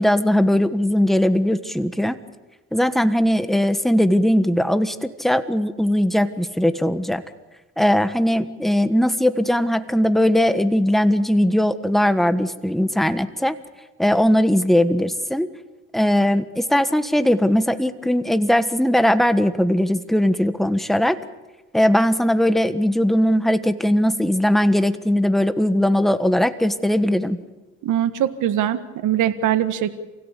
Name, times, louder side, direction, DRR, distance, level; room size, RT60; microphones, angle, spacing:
voice 1, 0.0-2.1 2.7-7.2 7.8-13.5 14.0-15.5 15.9-21.2 21.7-27.4, equal, ahead, 10 dB, 1.4 m, -19 dB
voice 2, 27.8-29.9, right 11 dB, 80° right, 10 dB, 1.6 m, -22 dB
28.0 x 16.5 x 8.4 m, 1.2 s
cardioid pair, 90°, 30 cm